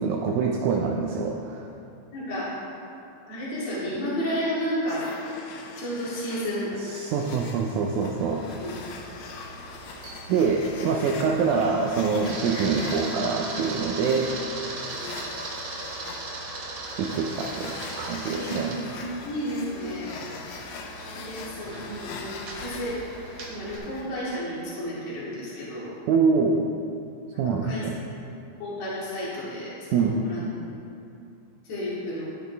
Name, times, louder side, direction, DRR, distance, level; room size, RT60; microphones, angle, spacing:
voice 1, 0.0-1.7 6.8-8.5 10.3-14.3 17.0-18.8 26.1-26.7 27.4-28.0 29.9-30.2, right 5 dB, 80° right, 0 dB, 2.1 m, -25 dB
voice 2, 2.1-2.5 3.3-5.1 5.8-6.7 8.6-8.7 14.0-14.3 18.3-20.1 21.0-23.0 23.5-25.9 27.3-27.9 28.6-30.4 31.6-32.3, equal, 55° left, -9 dB, 3.2 m, -32 dB
sound 1, 4.9-24.2, left 4 dB, 75° left, 1.9 m, -42 dB
Camera, 8.2-23.8, right 2 dB, 60° right, 1.4 m, -39 dB
11.0 x 8.0 x 3.4 m, 2.7 s
omnidirectional pair, 3.5 m